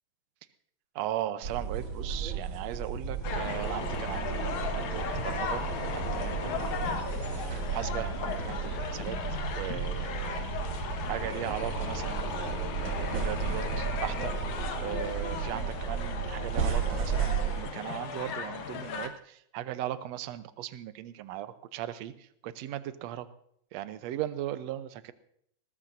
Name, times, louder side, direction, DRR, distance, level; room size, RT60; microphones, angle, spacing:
voice 1, 1.0-5.7 5.9-9.2 9.5-10.6 11.1-14.3 14.8-23.3 23.7-25.1, right 13 dB, 70° right, 11 dB, 1.9 m, -38 dB
sound 1, 1.4-17.6, right 6 dB, 45° right, 2.0 m, -34 dB
sound 2, 3.2-19.1, left 5 dB, 75° left, 2.8 m, -36 dB
19.5 x 19.5 x 2.7 m, 0.69 s
omnidirectional pair, 3.4 m